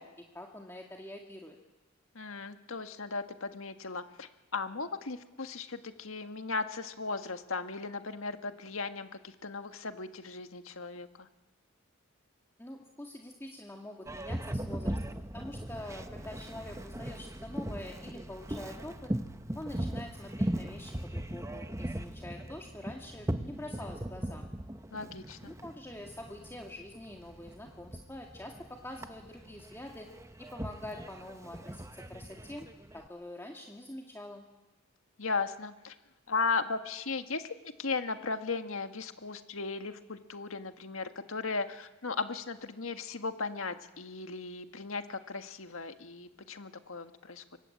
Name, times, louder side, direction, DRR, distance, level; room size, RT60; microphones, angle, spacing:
voice 1, 0.0-1.6 12.6-19.1 19.5-24.4 25.5-30.1 30.4-32.7 32.9-34.4, left 1 dB, 10° left, 1 dB, 1.9 m, -45 dB
voice 2, 2.1-11.3 24.9-25.5 35.2-35.9 36.3-47.6, left 4 dB, 80° left, 8 dB, 1.7 m, -36 dB
Boat Water vehicle, 14.0-33.1, right 1 dB, 15° right, 1.0 m, -39 dB
29.5 x 23.5 x 8.5 m, 1.1 s
head